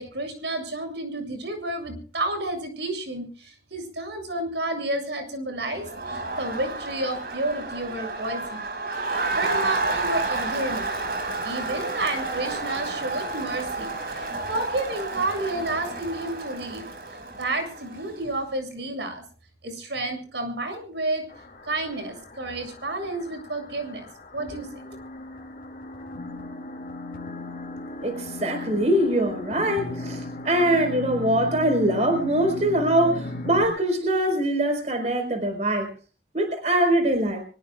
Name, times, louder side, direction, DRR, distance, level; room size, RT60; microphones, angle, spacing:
voice 1, 0.0-8.7 8.9-9.0 9.3-10.9 11.4-16.8 17.4-19.2 19.6-21.2 21.7-24.1 24.3-24.7, right 2 dB, 85° right, 5 dB, 7.2 m, -30 dB
Crowd, 5.7-18.3, right 3 dB, 60° right, 5.6 m, -31 dB
sound 1, 21.3-33.7, left 2 dB, 50° left, 2.3 m, -37 dB
voice 2, 28.0-35.9 36.3-37.4, right 1 dB, 40° right, 6 dB, 4.4 m, -23 dB
24.0 x 22.0 x 2.4 m, 0.39 s
head